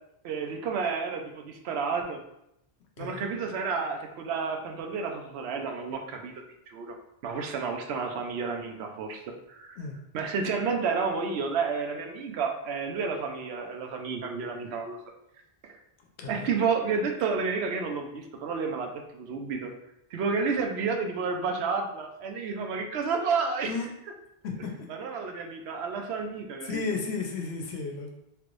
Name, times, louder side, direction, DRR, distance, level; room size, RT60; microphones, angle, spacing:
voice 1, 0.2-2.2 3.0-6.3 6.7-7.0 7.2-9.8 10.1-15.0 15.6-15.7 16.3-19.7 20.1-23.9 24.9-26.8, right 5 dB, 85° right, 3 dB, 0.8 m, -31 dB
voice 2, 16.2-16.5 23.6-23.9 24.4-24.7 26.6-28.2, left 4 dB, 85° left, 1 dB, 0.9 m, -33 dB
3.2 x 2.5 x 3.1 m, 0.81 s
omnidirectional pair, 1.1 m